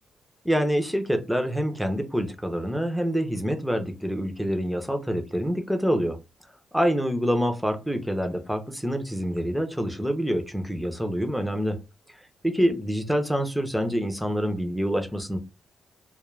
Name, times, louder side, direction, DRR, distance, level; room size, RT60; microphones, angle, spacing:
voice 1, 0.4-6.2 6.7-11.8 12.4-15.4, equal, ahead, 0.6 m, -26 dB
2.3 x 2.2 x 3.1 m
cardioid pair, 105°, 0 cm